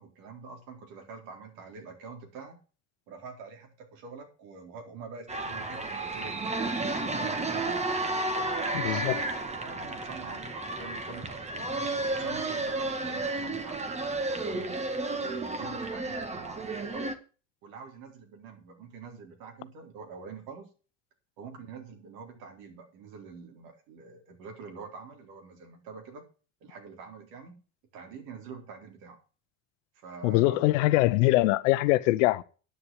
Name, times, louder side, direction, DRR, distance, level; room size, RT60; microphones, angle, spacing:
voice 1, 0.0-2.6 3.1-6.7 7.1-7.8 8.4-11.7 12.0-14.7 15.2-17.1 17.6-20.7 21.4-26.2 26.6-27.6 27.9-29.2 29.9-30.7, right 5 dB, 70° right, 4.0 m, -45 dB
sound 1, 5.3-17.1, right 2 dB, 20° right, 1.7 m, -32 dB
voice 2, 8.8-9.2 30.2-32.4, left 18 dB, 80° left, 0.9 m, -23 dB
9.6 x 6.9 x 7.0 m
supercardioid pair, 95°, 37 cm